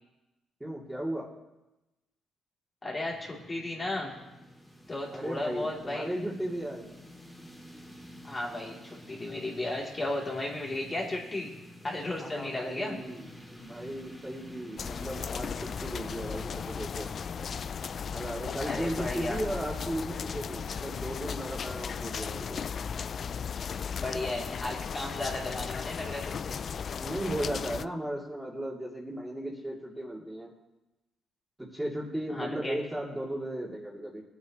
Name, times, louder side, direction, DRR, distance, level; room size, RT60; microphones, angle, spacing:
voice 1, 0.6-1.3 5.1-6.9 12.2-13.3 13.5-17.1 18.1-22.7 27.0-30.5 31.6-34.2, right 1 dB, 10° right, -4 dB, 2.8 m, -36 dB
voice 2, 2.8-4.1 4.9-6.1 8.2-11.5 11.8-13.0 18.6-19.4 24.0-26.6 32.3-32.8, left 2 dB, 25° left, -3 dB, 3.2 m, -34 dB
sound 1, 3.1-18.4, equal, 10° left, 2.6 m, -50 dB
sound 2, 14.8-27.9, left 6 dB, 50° left, 0.3 m, -36 dB
21.0 x 9.1 x 3.1 m, 1.0 s
cardioid pair, 90°, 0 cm